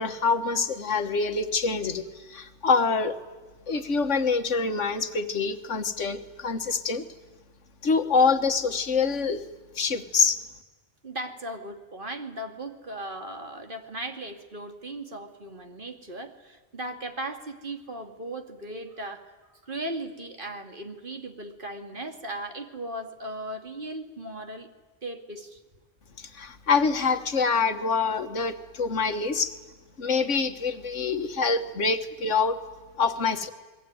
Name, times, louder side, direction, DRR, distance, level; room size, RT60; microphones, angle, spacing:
voice 1, 0.0-3.2 3.7-7.0 7.8-9.4 9.8-10.4 26.2-29.5 30.0-32.6 33.0-33.5, left 4 dB, 90° left, 8 dB, 1.8 m, -25 dB
voice 2, 11.0-19.2 19.5-24.7 25.0-25.6, right 1 dB, 45° right, 5 dB, 2.6 m, -37 dB
28.5 x 22.0 x 9.6 m, 1.2 s
omnidirectional pair, 1.2 m